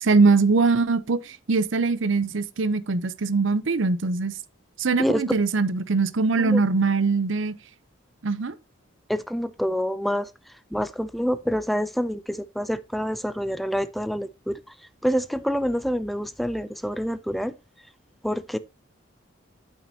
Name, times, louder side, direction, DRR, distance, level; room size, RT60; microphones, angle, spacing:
voice 1, 0.0-4.3 4.8-7.6 8.2-8.6, right 4 dB, 75° right, 0.6 m, -22 dB
voice 2, 9.1-14.7 15.0-17.5 18.2-18.6, equal, ahead, 0.4 m, -27 dB
8.9 x 8.7 x 2.8 m
head